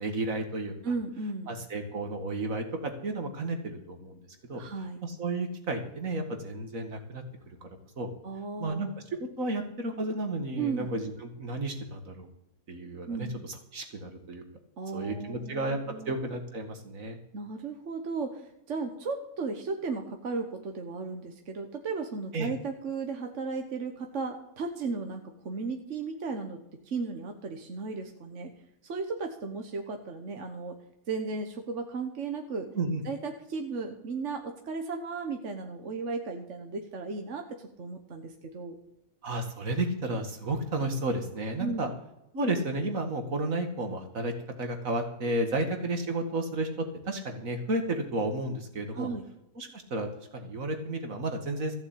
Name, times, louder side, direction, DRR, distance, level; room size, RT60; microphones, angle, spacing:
voice 1, 0.0-0.7 1.5-4.2 4.5-4.6 5.0-7.2 8.0-8.1 8.6-8.9 9.4-12.3 12.7-14.4 14.9-15.8 16.1-17.2 22.3-22.5 32.7-33.0 39.2-41.9 42.3-44.3 44.6-46.7 47.0-49.1 49.6-50.1 50.3-51.7, right 2 dB, 80° right, 5 dB, 2.3 m, -32 dB
voice 2, 0.8-1.5 4.5-5.0 8.2-8.9 10.6-10.9 13.1-13.4 14.8-16.2 17.3-28.5 28.8-30.8 31.1-32.7 33.0-38.8 41.6-41.9 48.9-49.2, right 4 dB, 60° right, 4 dB, 1.5 m, -35 dB
14.5 x 6.9 x 8.5 m, 0.86 s
omnidirectional pair, 1.4 m